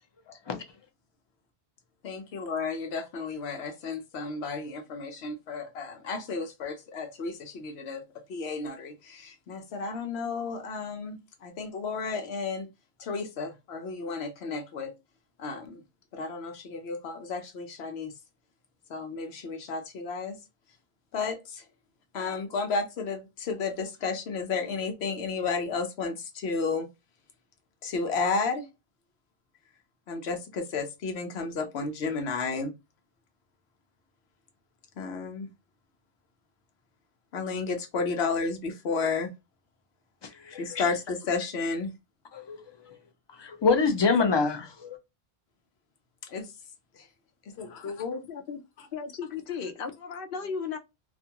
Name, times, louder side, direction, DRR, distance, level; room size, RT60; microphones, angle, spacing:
voice 1, 0.3-0.6 40.2-40.9 42.3-43.0 43.3-45.0, left 4 dB, 35° left, 0.5 m, -27 dB
voice 2, 2.0-8.0 8.3-12.7 13.0-14.9 15.4-15.8 16.1-18.1 18.9-20.4 21.1-21.6 22.1-26.9 27.8-28.7 30.1-32.7 35.0-35.5 37.3-39.3 40.6-41.9 46.2-46.5 46.9-47.1 47.6-48.2 48.8-48.9 49.5-49.7, left 4 dB, 85° left, 1.0 m, -32 dB
voice 3, 48.3-48.6 48.9-50.8, left 6 dB, 65° left, 0.8 m, -35 dB
2.5 x 2.3 x 2.7 m
omnidirectional pair, 1.1 m